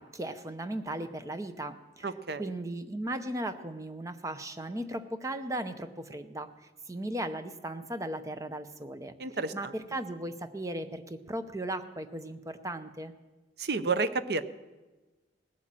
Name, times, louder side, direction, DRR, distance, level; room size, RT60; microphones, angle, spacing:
voice 1, 0.0-2.1 2.4-9.1 9.5-13.1, right 1 dB, 15° right, 10 dB, 0.6 m, -37 dB
voice 2, 2.0-2.5 9.2-9.7 13.6-14.4, right 3 dB, 55° right, 13 dB, 0.6 m, -31 dB
18.5 x 8.3 x 7.5 m, 1.2 s
head